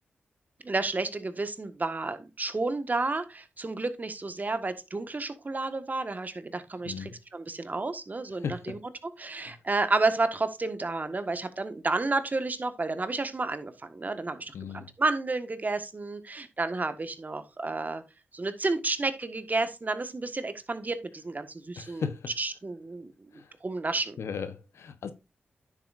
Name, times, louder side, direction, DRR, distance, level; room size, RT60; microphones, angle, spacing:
voice 1, 0.6-8.8 9.2-18.0 18.3-22.1 22.4-24.2, right 3 dB, 40° right, 1.5 m, -31 dB
voice 2, 6.8-7.2 8.4-8.7 9.4-9.6 14.5-14.9 21.8-22.3 23.3-23.5 24.2-25.1, left 6 dB, 80° left, 1.0 m, -36 dB
10.0 x 7.3 x 2.6 m
supercardioid pair, 45°, 4 cm